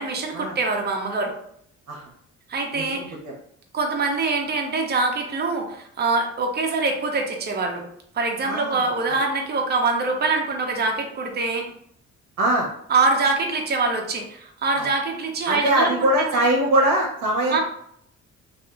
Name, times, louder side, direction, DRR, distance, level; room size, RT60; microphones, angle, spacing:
voice 1, 0.0-1.3 2.5-3.1 3.7-7.8 8.1-11.7 12.9-15.9 16.2-16.4 17.5-17.6, right 3 dB, 35° right, 1 dB, 0.6 m, -24 dB
voice 2, 2.7-3.3 8.4-8.8 12.4-12.7 14.8-14.9 15.5-17.6, right 1 dB, 70° right, -2 dB, 0.8 m, -22 dB
2.7 x 2.4 x 2.4 m, 0.69 s
cardioid pair, 90°, 30 cm